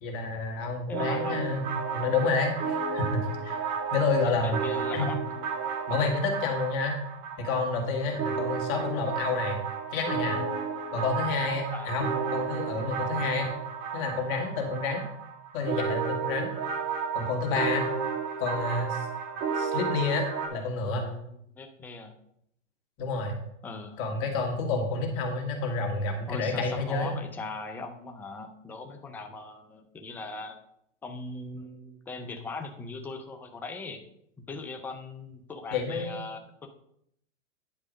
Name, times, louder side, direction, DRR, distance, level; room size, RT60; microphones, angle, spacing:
voice 1, 0.0-1.6 1.9-3.6 3.9-4.6 4.9-5.1 5.9-7.0 7.4-9.6 9.9-10.4 10.9-13.5 13.9-15.0 15.5-16.5 17.1-17.9 18.4-19.1 19.6-20.2 20.5-21.1 23.0-23.3 24.0-27.1 35.7-36.2, left 3 dB, 35° left, 2 dB, 2.0 m, -29 dB
voice 2, 0.9-1.4 4.4-5.2 11.7-12.0 20.9-22.1 23.6-24.0 26.3-30.5 31.0-34.0 34.4-36.7, left 3 dB, 5° left, 5 dB, 0.5 m, -39 dB
sound 1, 0.9-20.5, right 6 dB, 30° right, 1.8 m, -32 dB
10.0 x 4.8 x 5.2 m, 0.74 s
hypercardioid pair, 135°, 38 cm